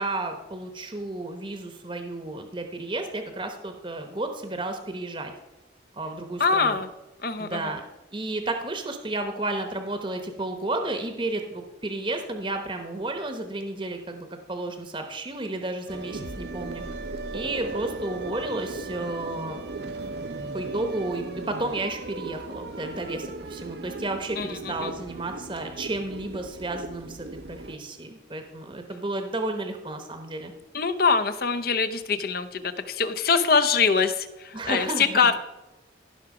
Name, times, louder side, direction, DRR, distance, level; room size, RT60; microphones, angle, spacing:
voice 1, 0.0-5.3 6.0-6.8 7.4-7.8 8.1-16.8 17.3-19.6 20.2-30.5 34.5-35.3, right 2 dB, 25° right, 6 dB, 0.9 m, -32 dB
voice 2, 6.4-6.9 7.2-7.7 24.4-24.5 30.7-35.4, left 5 dB, 50° left, 10 dB, 0.7 m, -23 dB
sound 1, 15.9-27.8, right 3 dB, 60° right, 0.7 m, -37 dB
15.5 x 6.1 x 4.9 m, 1.0 s
head